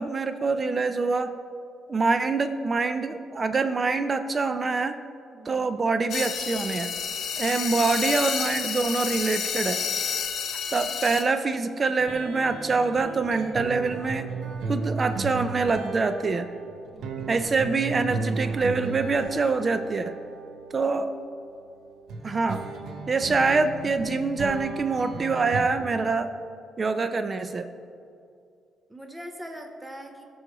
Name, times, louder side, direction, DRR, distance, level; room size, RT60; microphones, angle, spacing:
voice 1, 0.0-1.3 1.9-5.0 5.5-6.9 7.4-9.8 10.7-14.3 14.7-16.5 17.3-20.1 20.7-21.1 22.2-22.6 23.1-26.3 26.8-27.7, right 4 dB, 35° right, 10 dB, 0.4 m, -25 dB
voice 2, 5.3-5.6 7.4-7.6 16.9-17.3 20.8-20.9 28.9-30.2, equal, 15° right, 4 dB, 0.8 m, -42 dB
sound 1, 6.1-11.2, left 7 dB, 75° left, 1.0 m, -30 dB
sound 2, 12.0-21.4 22.1-25.6, right 4 dB, 75° right, 0.8 m, -35 dB
14.0 x 6.3 x 3.0 m, 2.5 s
cardioid pair, 90°, 0 cm